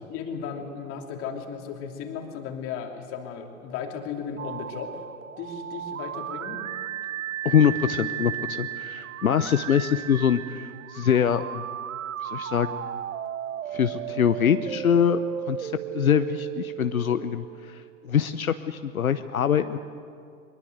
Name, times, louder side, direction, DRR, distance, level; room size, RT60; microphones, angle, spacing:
voice 1, 0.1-5.0 5.4-6.6, left 6 dB, 30° left, 3 dB, 3.1 m, -35 dB
sound 1, 4.4-18.2, right 10 dB, 65° right, 0.9 m, -35 dB
voice 2, 7.4-11.6 12.2-12.8 13.7-15.2 15.5-19.8, left 8 dB, 75° left, 10 dB, 1.0 m, -24 dB
23.5 x 22.0 x 8.0 m, 2.3 s
figure-of-eight pair, 115°, 43 cm